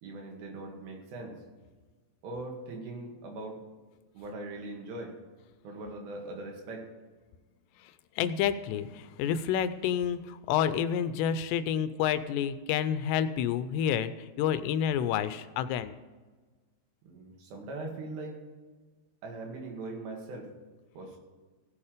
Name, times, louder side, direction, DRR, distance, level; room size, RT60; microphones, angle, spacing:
voice 1, 0.0-1.4 2.2-3.6 4.1-5.2 5.6-6.9 17.0-18.4 19.2-20.5 21.0-21.2, right 2 dB, 75° right, 1 dB, 4.1 m, -40 dB
voice 2, 8.2-16.0, left 9 dB, 85° left, 12 dB, 2.8 m, -29 dB
16.5 x 7.2 x 5.0 m, 1.3 s
omnidirectional pair, 5.0 m